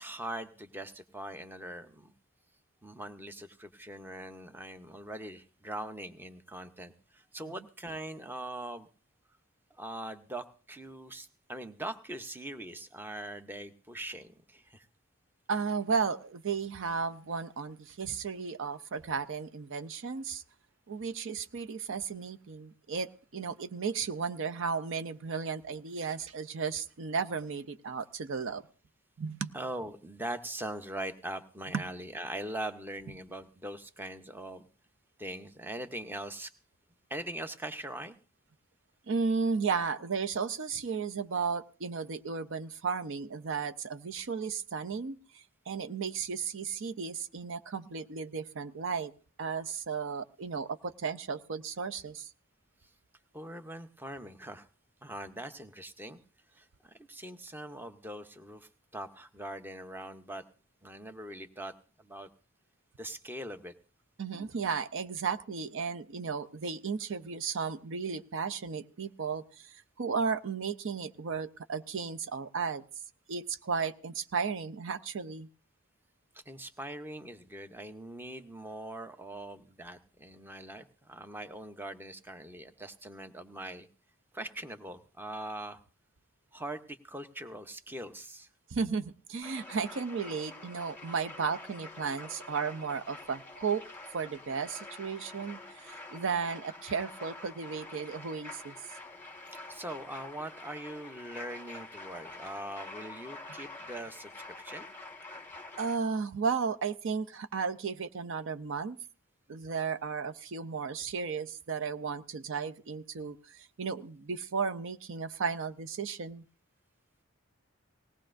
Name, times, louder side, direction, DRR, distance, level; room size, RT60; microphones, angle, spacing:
voice 1, 0.0-2.1 2.8-8.9 9.8-14.9 29.5-34.7 35.2-36.5 37.1-38.2 53.3-54.7 55.0-56.2 56.5-60.4 60.8-62.3 63.0-63.7 76.3-83.9 84.3-85.8 86.5-88.5 99.7-104.9, right 1 dB, 10° right, 9 dB, 0.7 m, -42 dB
voice 2, 15.5-20.4 20.9-28.6 29.2-29.5 31.7-31.8 39.1-49.1 49.4-52.3 64.2-72.8 73.3-75.5 88.7-93.8 94.1-98.7 105.8-109.0 109.5-116.4, right 5 dB, 65° right, 11 dB, 0.5 m, -34 dB
sound 1, 89.4-106.0, left 2 dB, 10° left, 1.3 m, -47 dB
19.0 x 17.5 x 2.6 m, 0.37 s
head